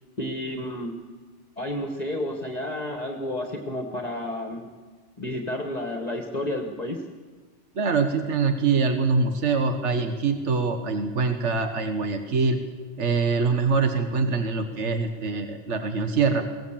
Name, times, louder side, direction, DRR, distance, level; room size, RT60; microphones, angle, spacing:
voice 1, 0.2-0.9 1.6-4.7 5.2-7.0, left 1 dB, 35° left, 3 dB, 1.6 m, -31 dB
voice 2, 7.8-12.6 13.0-16.4, right 4 dB, 80° right, 6 dB, 1.6 m, -24 dB
22.5 x 17.5 x 7.4 m, 1.4 s
omnidirectional pair, 1.2 m